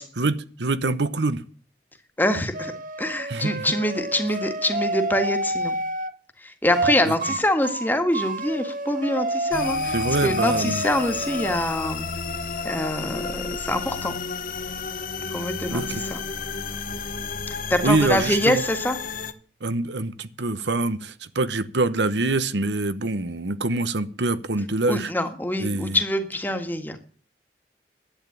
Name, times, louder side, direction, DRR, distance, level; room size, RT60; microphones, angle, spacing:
voice 1, 0.2-1.4 3.3-3.7 7.1-7.2 9.9-10.8 15.7-16.0 17.8-18.6 19.6-25.1 25.6-26.0, right 2 dB, 85° right, 1.0 m, -25 dB
voice 2, 2.2-2.7 3.0-5.8 6.4-10.0 10.2-12.1 12.6-14.2 15.3-16.2 17.7-19.0 24.9-27.0, left 1 dB, 10° left, 1.8 m, -25 dB
sound 1, 2.5-6.1 6.7-7.0 7.2-7.4 7.6-11.6, right 2 dB, 50° right, 1.0 m, -29 dB
sound 2, 9.5-19.3, left 4 dB, 50° left, 1.2 m, -32 dB
11.5 x 9.2 x 8.6 m
head